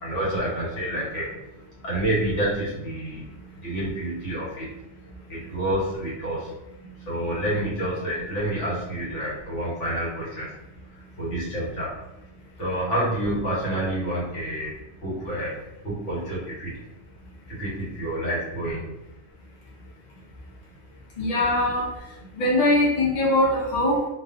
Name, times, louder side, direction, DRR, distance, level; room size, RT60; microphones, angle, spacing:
voice 1, 0.0-1.3 1.8-3.3 3.6-4.7 5.3-6.5 7.1-10.5 11.2-11.9 12.6-14.7 15.0-15.6 15.8-16.8 17.5-18.8, right 1 dB, 75° left, -7 dB, 1.3 m, -28 dB
voice 2, 21.2-22.0 22.3-24.1, left 1 dB, 45° left, -5 dB, 0.8 m, -22 dB
2.4 x 2.4 x 2.4 m, 0.93 s
omnidirectional pair, 1.3 m